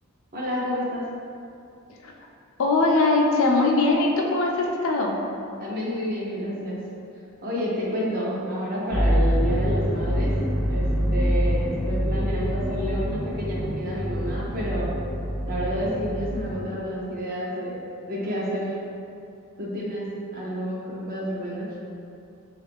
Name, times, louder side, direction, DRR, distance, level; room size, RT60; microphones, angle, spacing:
voice 1, 0.3-1.0 5.6-6.8 7.4-10.3 10.7-14.9 15.5-17.8 18.1-18.7 19.6-20.1 20.3-21.7, equal, 40° right, -5 dB, 0.6 m, -29 dB
voice 2, 2.6-5.2, left 2 dB, 65° left, 0 dB, 0.4 m, -21 dB
sound 1, 8.9-16.6, equal, ahead, 0.4 m, -25 dB
3.3 x 2.4 x 3.3 m, 2.6 s
head